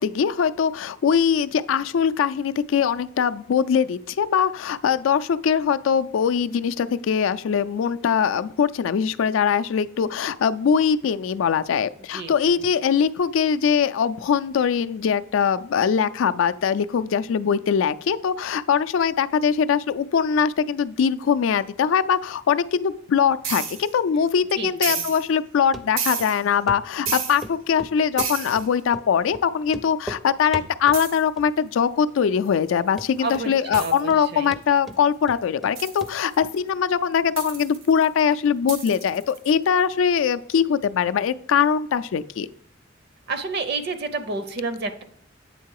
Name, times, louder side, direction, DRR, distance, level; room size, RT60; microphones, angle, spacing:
voice 1, 0.0-42.5, left 7 dB, 70° left, 12 dB, 0.3 m, -22 dB
voice 2, 12.1-12.6 24.6-25.0 33.2-34.5 43.3-45.0, right 3 dB, 55° right, 10 dB, 0.6 m, -30 dB
sound 1, 23.4-23.9 24.8-25.3 26.0-26.5 27.1-27.5 28.2-28.7 30.9-31.2 32.5-32.6 33.3-33.4 33.7-34.0 35.8-36.6 37.4-38.2 38.7-39.5, right 6 dB, 85° right, 1.0 m, -31 dB
Run, 25.7-25.8 26.2-26.3 26.7-26.8 27.1-27.5 27.8-28.7 28.9-29.1 29.3-29.4 29.7-30.2 30.5-31.0 31.4-31.8 32.1-32.2 32.6-32.7 33.0-33.5 33.7-34.2 34.5-35.7 36.0-36.1 36.4-36.5, equal, ahead, 0.4 m, -37 dB
8.3 x 3.7 x 4.7 m, 0.67 s
head